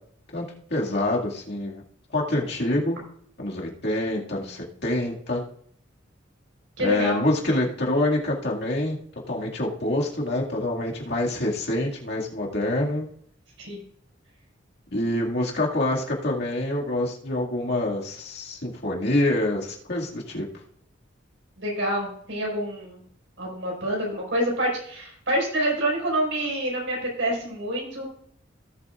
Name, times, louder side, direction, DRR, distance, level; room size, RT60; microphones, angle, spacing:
voice 1, 0.7-1.8 2.1-3.0 3.4-5.4 6.8-9.0 9.3-13.0 14.9-20.4, left 1 dB, 60° left, -2 dB, 2.2 m, -26 dB
voice 2, 6.8-7.2 13.6-13.8 21.6-23.0 23.4-28.1, right 1 dB, 75° right, -2 dB, 5.3 m, -27 dB
17.5 x 8.1 x 2.5 m, 0.64 s
head